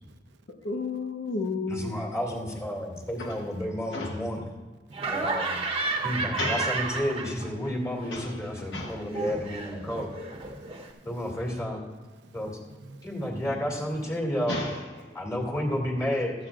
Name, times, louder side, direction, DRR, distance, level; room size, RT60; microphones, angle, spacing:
voice 1, 0.6-1.9 2.7-2.8 3.2-3.4 3.9-4.5 6.4-6.8 8.1-9.0 14.5-15.2, left 3 dB, 75° left, 1.1 m, -33 dB
voice 2, 1.7-4.4 5.1-5.6 6.0-10.1 11.0-11.8 12.3-12.6 13.0-14.6 15.1-16.3, equal, 20° left, 2.6 m, -31 dB
Laughter, 4.9-7.7 8.0-10.9, right 3 dB, 35° right, 1.1 m, -32 dB
voice 3, 4.9-5.4 5.9-6.1 10.4-11.3 12.2-13.1, right 2 dB, 85° right, 0.7 m, -52 dB
15.5 x 13.5 x 2.5 m
head